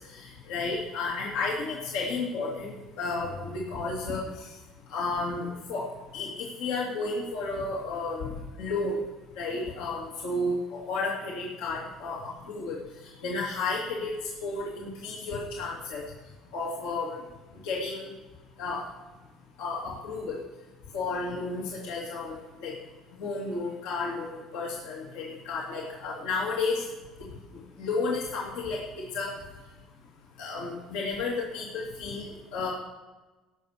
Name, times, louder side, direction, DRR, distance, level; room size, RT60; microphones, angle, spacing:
voice 1, 0.5-4.2 4.9-5.9 6.1-6.3 6.6-8.3 8.6-9.0 9.4-12.8 13.2-14.1 14.4-16.0 16.5-17.2 17.6-18.1 18.6-18.9 19.6-20.4 20.9-22.4 22.6-22.7 23.2-26.8 27.8-28.8 29.1-29.3 30.4-32.7, left 3 dB, 85° left, -4 dB, 2.5 m, -32 dB
17.0 x 6.3 x 6.6 m, 1.2 s
supercardioid pair, 95°, 0 cm